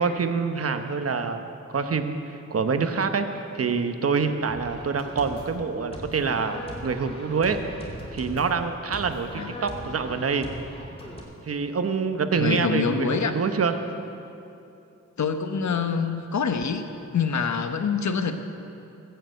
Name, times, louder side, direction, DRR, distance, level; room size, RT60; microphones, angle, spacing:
voice 1, 0.0-1.4 1.7-3.3 3.5-10.5 11.4-13.8, right 5 dB, 50° right, 8 dB, 1.0 m, -26 dB
sound 1, 4.5-11.2, equal, 20° left, 2.7 m, -40 dB
voice 2, 12.4-13.3 15.2-18.3, left 6 dB, 65° left, 8 dB, 1.0 m, -26 dB
15.0 x 6.8 x 8.0 m, 2.8 s
cardioid pair, 65°, 30 cm